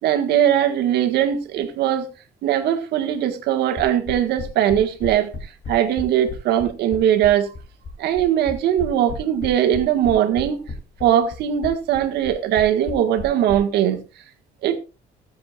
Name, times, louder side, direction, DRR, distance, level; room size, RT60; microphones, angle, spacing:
voice 1, 0.0-2.1 2.4-5.4 5.7-7.5 8.0-10.7 11.0-14.0 14.6-14.8, right 10 dB, 75° right, 1.7 m, -20 dB
sound 1, 3.8-13.6, left 4 dB, 45° left, 3.1 m, -33 dB
22.0 x 7.6 x 2.4 m
cardioid pair, 110°, 17 cm